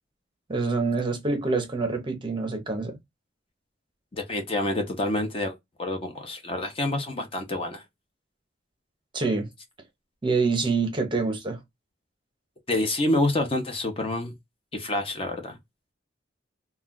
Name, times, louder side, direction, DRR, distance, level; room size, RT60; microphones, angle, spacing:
voice 1, 0.5-3.0 9.1-9.5 10.2-11.6, right 4 dB, 25° right, 0.6 m, -26 dB
voice 2, 4.1-5.5 5.8-7.8 12.7-14.3 14.7-15.6, left 1 dB, 30° left, 0.6 m, -27 dB
2.3 x 2.2 x 3.6 m
head